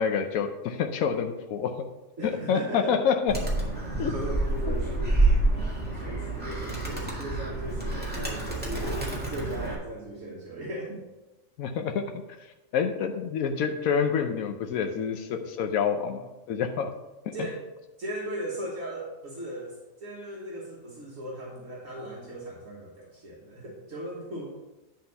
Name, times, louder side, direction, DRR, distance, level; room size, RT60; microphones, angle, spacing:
voice 1, 0.0-1.9 2.2-3.3 4.0-4.1 11.6-12.1 12.7-17.0 17.3-17.4, left 7 dB, 90° left, 5 dB, 1.1 m, -27 dB
voice 2, 2.2-3.0 4.1-5.3 5.9-11.0 17.3-17.6 18.0-24.5, right 1 dB, 70° right, -4 dB, 1.7 m, -37 dB
Animal, 3.3-9.8, right 2 dB, 5° right, 1.9 m, -28 dB
10.5 x 4.0 x 5.4 m, 1.0 s
omnidirectional pair, 1.4 m